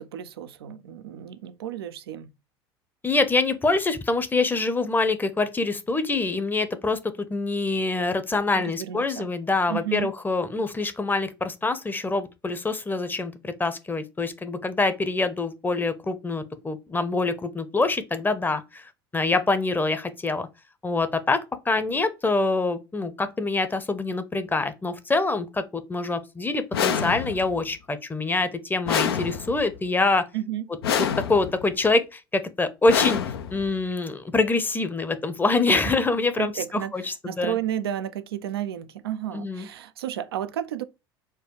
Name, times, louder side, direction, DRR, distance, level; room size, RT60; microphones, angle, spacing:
voice 1, 0.0-2.3 8.5-9.3 9.7-10.1 30.3-30.6 35.7-35.9 36.4-40.8, right 11 dB, 80° right, 0.5 m, -32 dB
voice 2, 3.0-20.5 20.8-30.3 31.0-33.2 33.5-37.6 39.3-39.7, left 3 dB, 15° left, 0.7 m, -25 dB
sound 1, 26.7-27.6 28.9-29.8 30.8-31.6 32.9-33.8, left 8 dB, 80° left, 0.6 m, -27 dB
4.4 x 2.3 x 4.6 m
hypercardioid pair, 75°, 13 cm